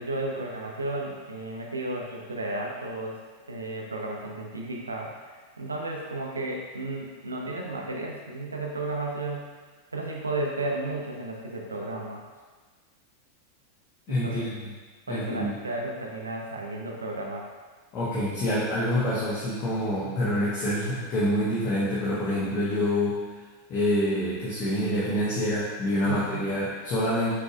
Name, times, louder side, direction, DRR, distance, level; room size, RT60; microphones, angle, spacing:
voice 1, 0.0-3.2 3.5-9.5 9.9-12.2 14.1-14.5 15.1-17.5 26.0-26.5, right 2 dB, 75° right, -1 dB, 0.7 m, -33 dB
voice 2, 14.1-14.7 15.1-15.5 17.9-23.2 23.7-27.4, equal, 35° left, -9 dB, 1.1 m, -26 dB
6.3 x 3.4 x 2.5 m, 1.4 s
figure-of-eight pair, 90°, 0 cm